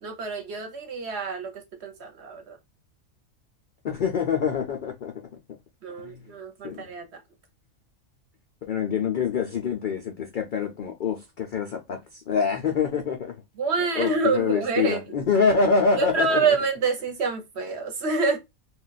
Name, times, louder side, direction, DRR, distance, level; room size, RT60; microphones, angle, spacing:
voice 1, 0.0-2.6 5.8-7.1 13.6-15.0 15.9-18.4, right 4 dB, 55° right, 0.9 m, -27 dB
voice 2, 3.8-5.3 6.0-6.2 6.6-6.9 8.7-13.3 14.0-16.6, left 5 dB, 75° left, 0.4 m, -25 dB
2.4 x 2.3 x 3.9 m
omnidirectional pair, 1.5 m